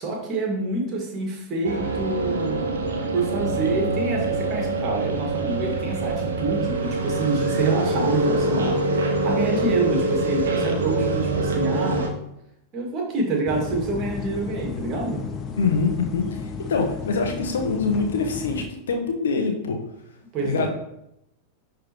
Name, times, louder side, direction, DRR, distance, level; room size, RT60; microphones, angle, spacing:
voice 1, 0.0-2.6 3.1-12.0 12.7-15.3 20.3-20.7, right 3 dB, 35° right, -1 dB, 2.2 m, -27 dB
sound 1, 1.6-12.1, right 2 dB, 65° right, 1.0 m, -25 dB
sound 2, 13.5-18.7, left 5 dB, 30° left, 0.6 m, -33 dB
voice 2, 15.6-19.8 20.4-20.7, left 4 dB, 65° left, 3 dB, 1.1 m, -24 dB
11.0 x 3.8 x 3.1 m, 0.81 s
figure-of-eight pair, 90°, 0 cm